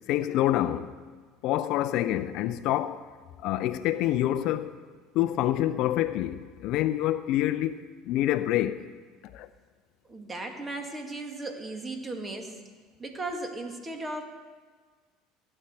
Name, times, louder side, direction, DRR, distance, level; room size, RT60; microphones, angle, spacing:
voice 1, 0.1-0.9 1.4-3.0 3.4-4.7 5.1-8.8 9.2-9.5, left 13 dB, 60° left, 0.5 m, -27 dB
voice 2, 10.0-12.6 13.0-14.3, right 2 dB, 20° right, 2.1 m, -36 dB
16.0 x 8.9 x 4.6 m
hypercardioid pair, 75°, 0 cm